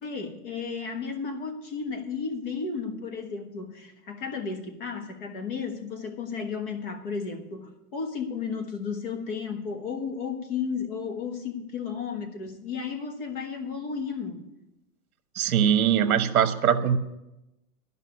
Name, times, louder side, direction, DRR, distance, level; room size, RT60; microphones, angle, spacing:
voice 1, 0.0-14.4, left 5 dB, 35° left, 6 dB, 1.4 m, -33 dB
voice 2, 15.4-17.0, right 9 dB, 65° right, 10 dB, 1.1 m, -22 dB
12.5 x 5.5 x 9.3 m, 0.94 s
hypercardioid pair, 175°, 47 cm